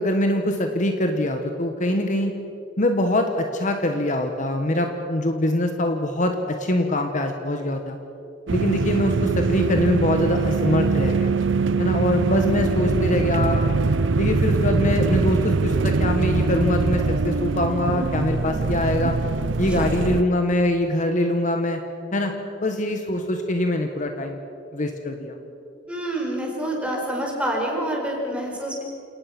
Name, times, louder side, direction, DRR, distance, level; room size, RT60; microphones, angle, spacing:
voice 1, 0.0-2.3 2.8-8.0 8.5-11.3 11.8-13.7 14.2-19.1 19.6-21.8 22.1-22.3 22.6-24.4 24.7-25.4, left 1 dB, 40° left, 5 dB, 1.5 m, -23 dB
sound 1, 8.5-20.2, right 4 dB, 85° right, 0.6 m, -22 dB
voice 2, 25.9-28.8, right 1 dB, 5° right, -1 dB, 5.1 m, -27 dB
29.0 x 18.5 x 6.1 m, 2.6 s
head